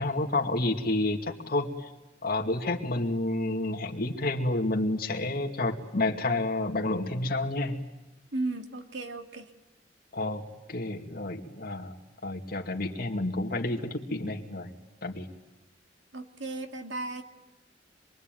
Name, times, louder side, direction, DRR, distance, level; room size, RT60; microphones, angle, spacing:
voice 1, 0.0-1.7 2.2-7.8 10.1-10.4 10.7-11.9 12.2-14.7 15.0-15.3, left 2 dB, 55° left, 2 dB, 2.4 m, -29 dB
voice 2, 8.3-9.5 16.1-17.2, right 2 dB, 85° right, 5 dB, 2.2 m, -35 dB
26.5 x 22.5 x 9.3 m, 1.0 s
head